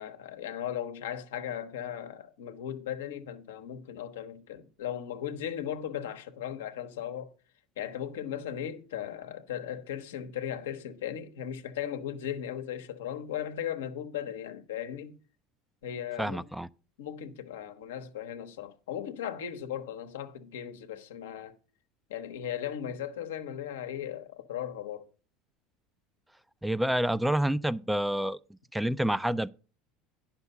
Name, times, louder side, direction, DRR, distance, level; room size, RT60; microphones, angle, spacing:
voice 1, 0.0-7.3 7.8-15.2 15.8-16.5 17.0-21.6 22.1-25.1, left 10 dB, 85° left, 0.8 m, -37 dB
voice 2, 16.2-16.7 26.6-28.4 28.7-29.5, right 1 dB, 5° right, 0.3 m, -28 dB
9.7 x 5.8 x 5.3 m
hypercardioid pair, 85°, 0 cm